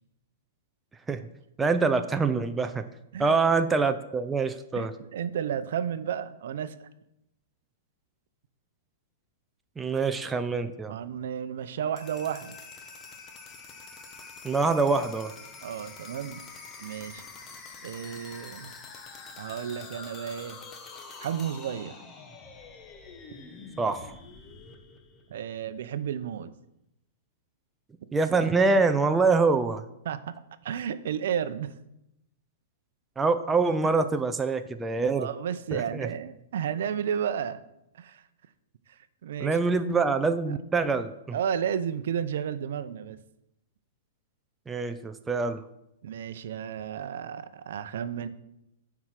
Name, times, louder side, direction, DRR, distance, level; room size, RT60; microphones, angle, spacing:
voice 1, 1.6-2.9 3.2-4.9 9.8-10.9 14.4-15.3 23.8-24.1 28.1-29.8 33.2-35.3 35.7-36.1 39.4-41.1 44.7-45.6, right 4 dB, 10° right, 8 dB, 0.5 m, -25 dB
voice 2, 4.7-6.9 10.9-12.6 15.6-16.4 16.8-17.2 17.8-18.7 19.4-20.6 21.2-22.0 25.3-26.5 30.0-30.4 30.6-31.7 35.2-37.6 37.9-38.3 38.9-39.6 41.3-43.2 46.0-48.3, right 8 dB, 70° right, 12 dB, 0.6 m, -32 dB
sound 1, 11.8-25.7, left 4 dB, 20° left, 1.1 m, -46 dB
9.8 x 4.7 x 5.8 m, 0.83 s
hypercardioid pair, 145°, 0 cm